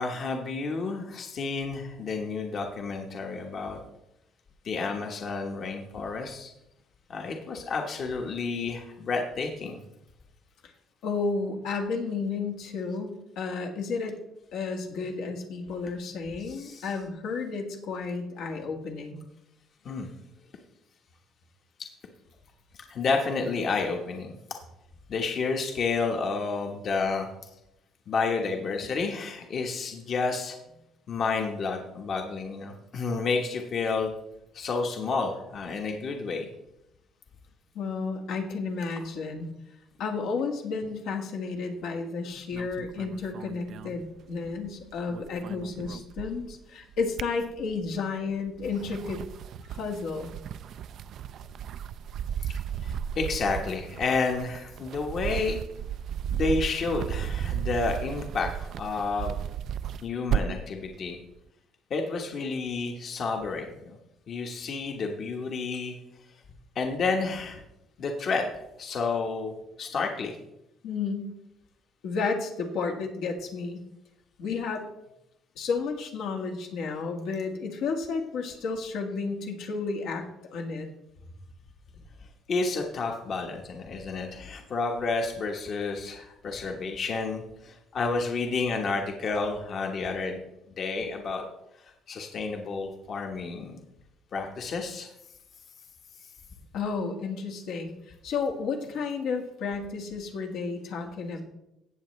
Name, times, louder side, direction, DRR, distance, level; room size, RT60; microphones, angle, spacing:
voice 1, 0.0-3.8 4.6-6.5 7.1-9.8 16.4-17.0 19.8-20.1 22.9-24.3 25.1-27.3 28.1-30.6 31.1-34.1 34.5-36.5 52.4-52.5 52.8-55.6 56.3-59.4 60.0-61.2 61.9-64.0 64.3-66.0 66.7-67.6 68.0-68.5 68.8-69.5 69.8-70.3 82.5-90.4 90.7-91.4 91.8-93.8 94.3-95.1, left 4 dB, 50° left, 2 dB, 1.3 m, -30 dB
voice 2, 11.0-14.2 14.5-19.2 37.7-39.5 40.0-49.2 49.7-50.3 70.8-71.3 72.0-73.8 74.4-74.9 75.5-80.9 96.7-97.9 98.2-101.4, left 4 dB, 75° left, 2 dB, 1.6 m, -32 dB
sound 1, 42.5-44.7 45.0-46.6 46.9-48.0 48.5-60.7, right 9 dB, 60° right, 0.3 m, -34 dB
17.0 x 7.1 x 3.2 m, 0.87 s
cardioid pair, 120°, 0 cm